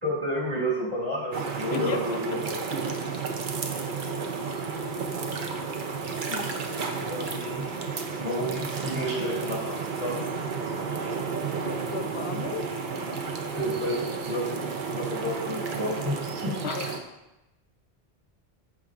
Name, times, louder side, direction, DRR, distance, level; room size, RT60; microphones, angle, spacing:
voice 1, 0.0-2.6 7.0-7.6 8.2-9.7 10.0-10.2 13.5-14.6 14.9-16.5, equal, 40° right, -5 dB, 2.7 m, -30 dB
sound 1, 1.3-17.0, right 5 dB, 55° right, 0.9 m, -32 dB
voice 2, 1.7-2.0 2.3-2.4 3.7-4.0 6.3-6.6 11.5-12.7 16.6-17.1, left 7 dB, 85° left, 8 dB, 0.9 m, -36 dB
14.0 x 4.9 x 2.5 m, 0.98 s
omnidirectional pair, 1.1 m